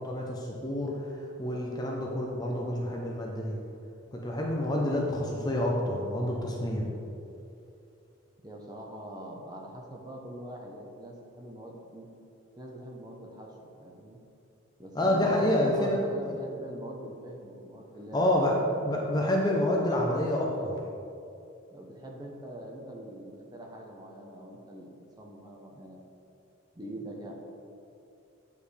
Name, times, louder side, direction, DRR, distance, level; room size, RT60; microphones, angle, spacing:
voice 1, 0.0-3.6 4.1-6.9 14.9-16.0 18.1-18.6 18.8-20.7, left 1 dB, 20° left, -1 dB, 0.6 m, -28 dB
voice 2, 8.4-12.1 12.6-14.2 14.8-19.3 20.3-20.8 21.7-26.0 26.7-27.3, right 1 dB, 20° right, -1 dB, 0.7 m, -43 dB
8.4 x 5.2 x 3.3 m, 2.7 s
head